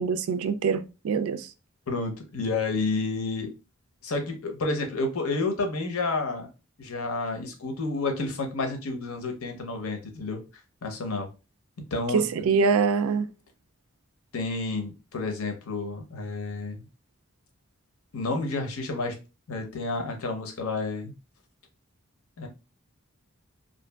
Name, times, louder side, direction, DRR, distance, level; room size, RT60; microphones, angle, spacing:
voice 1, 0.0-1.5 12.1-13.3, right 5 dB, 80° right, 0.3 m, -24 dB
voice 2, 1.9-3.5 4.0-6.5 6.8-10.4 10.8-11.3 11.9-12.2 14.3-16.8 18.1-19.2 19.5-21.1 22.4-22.5, left 3 dB, 85° left, 0.7 m, -30 dB
2.6 x 2.5 x 2.2 m
head